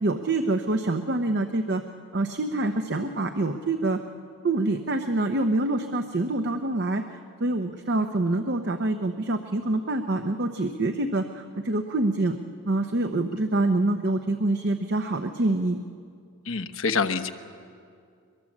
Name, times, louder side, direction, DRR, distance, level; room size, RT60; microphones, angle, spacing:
voice 1, 0.0-1.8 2.1-4.0 4.4-12.4 12.7-15.8, right 2 dB, 50° right, 7 dB, 0.8 m, -26 dB
voice 2, 16.4-17.3, left 5 dB, 65° left, 7 dB, 1.1 m, -26 dB
22.5 x 22.0 x 7.3 m, 2.3 s
head